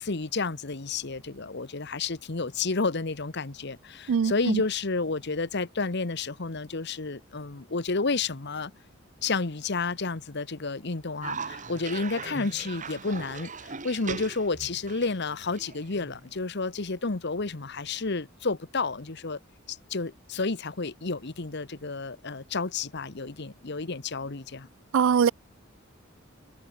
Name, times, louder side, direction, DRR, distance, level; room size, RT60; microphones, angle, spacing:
voice 1, 0.0-8.7 9.2-19.4 19.7-24.7, left 3 dB, 55° left, 1.2 m, -31 dB
Cough, 11.2-16.3, right 4 dB, 40° right, 2.3 m, -39 dB
voice 2, 24.9-25.3, right 7 dB, 70° right, 0.4 m, -21 dB
head